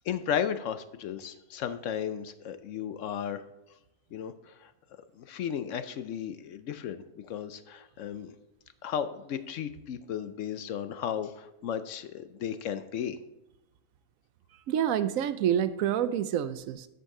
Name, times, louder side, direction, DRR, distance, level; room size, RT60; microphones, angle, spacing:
voice 1, 0.1-3.4 4.1-4.7 5.1-8.4 8.8-13.2, left 8 dB, 70° left, 11 dB, 0.9 m, -34 dB
voice 2, 14.7-16.9, right 10 dB, 75° right, 12 dB, 0.9 m, -27 dB
13.0 x 5.4 x 3.7 m, 0.92 s
omnidirectional pair, 1.5 m